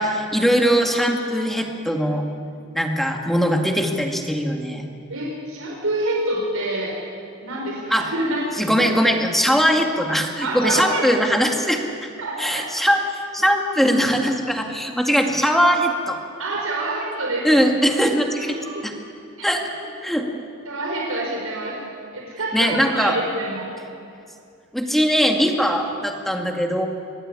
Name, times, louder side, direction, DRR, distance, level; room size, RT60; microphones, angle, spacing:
voice 1, 0.0-2.2 2.7-4.8 7.9-8.1 8.6-11.8 12.4-13.0 13.3-16.2 17.4-18.5 18.8-18.9 19.4-19.7 20.0-20.3 22.5-23.2 24.7-26.9, equal, ahead, 2 dB, 2.2 m, -20 dB
voice 2, 5.1-6.9 7.4-8.5 9.6-9.7 10.4-11.1 12.2-12.6 16.4-17.6 18.5-18.8 19.4-19.5 20.7-21.8 22.1-24.0, right 1 dB, 80° right, -2 dB, 5.4 m, -27 dB
25.5 x 20.0 x 9.9 m, 2.4 s
head